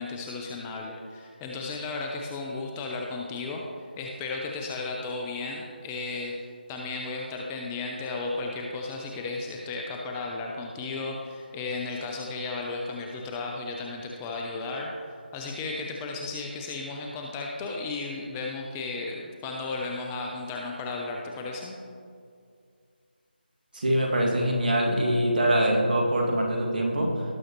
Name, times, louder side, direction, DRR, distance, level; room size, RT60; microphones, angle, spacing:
voice 1, 0.0-6.3 6.7-14.9 15.3-21.8, left 3 dB, 10° left, 0 dB, 0.5 m, -34 dB
voice 2, 23.7-27.2, right 1 dB, 55° right, -1 dB, 2.1 m, -24 dB
18.0 x 6.3 x 3.0 m, 2.2 s
figure-of-eight pair, 160°, 6 cm